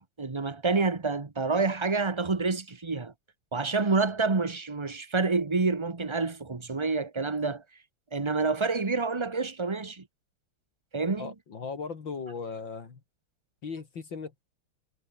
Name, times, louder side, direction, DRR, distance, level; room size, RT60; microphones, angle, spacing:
voice 1, 0.0-3.1 3.5-7.6 8.1-10.1 10.9-11.3, right 4 dB, 25° right, 0.7 m, -28 dB
voice 2, 11.2-13.0 13.6-14.4, left 5 dB, 60° left, 3.2 m, -38 dB
omnidirectional pair, 2.4 m